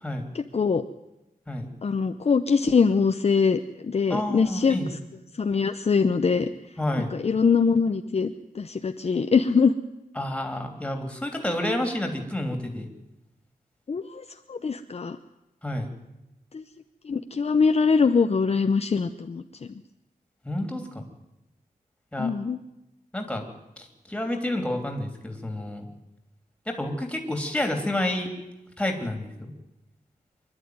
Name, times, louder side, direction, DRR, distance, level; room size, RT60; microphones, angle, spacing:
voice 1, 0.3-0.8 1.8-4.8 5.4-6.5 7.1-9.7 13.9-15.2 16.5-16.6 17.0-19.8 22.2-22.6, left 5 dB, 40° left, 7 dB, 0.7 m, -23 dB
voice 2, 4.1-4.9 6.8-7.1 10.1-12.9 15.6-15.9 20.4-21.1 22.1-22.3 23.1-23.5 23.8-25.9 26.7-28.3 28.8-29.5, left 1 dB, 5° left, 3 dB, 3.1 m, -29 dB
25.5 x 12.0 x 9.5 m, 0.93 s
wide cardioid pair, 155°, 15 cm